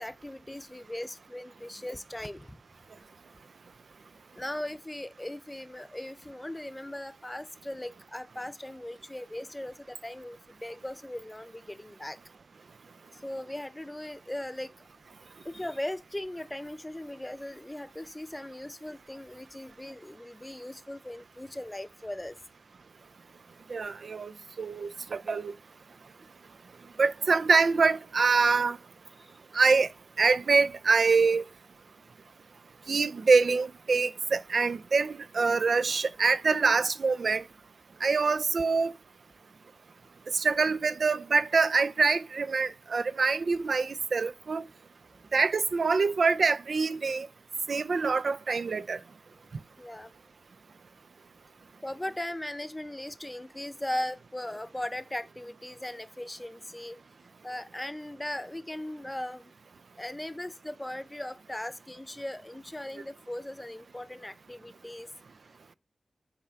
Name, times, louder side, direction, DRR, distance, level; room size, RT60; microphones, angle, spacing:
voice 1, 0.0-2.6 4.3-12.2 13.1-14.7 15.4-22.4 29.2-29.3 49.8-50.1 51.8-57.0 57.4-59.5 60.0-65.1, left 1 dB, 15° left, 0.6 m, -38 dB
voice 2, 23.7-24.3 24.6-25.5 27.0-28.8 29.5-29.9 30.2-31.4 32.9-37.4 38.0-38.9 40.3-44.6 45.3-47.3 47.7-49.0, right 4 dB, 75° right, 0.4 m, -25 dB
8.0 x 3.3 x 5.7 m
wide cardioid pair, 60°, 0 cm